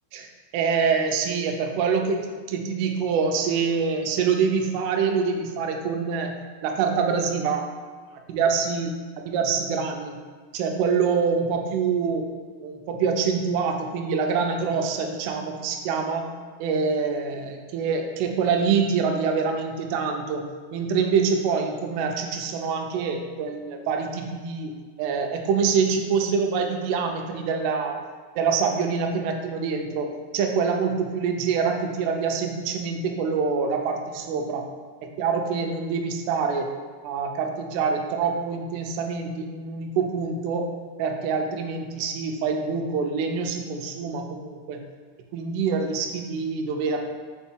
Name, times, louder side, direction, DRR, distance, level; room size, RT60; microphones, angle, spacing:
voice 1, 0.1-2.2 2.5-6.3 6.6-7.7 8.1-8.9 9.3-10.2 10.5-12.2 12.6-16.3 16.6-20.4 20.7-24.7 25.0-28.0 28.4-30.1 30.3-34.6 35.0-36.7 37.0-40.7 41.0-44.8 45.3-47.0, right 5 dB, 80° right, 3 dB, 2.6 m, -25 dB
5.6 x 4.6 x 4.4 m, 1.5 s
omnidirectional pair, 5.2 m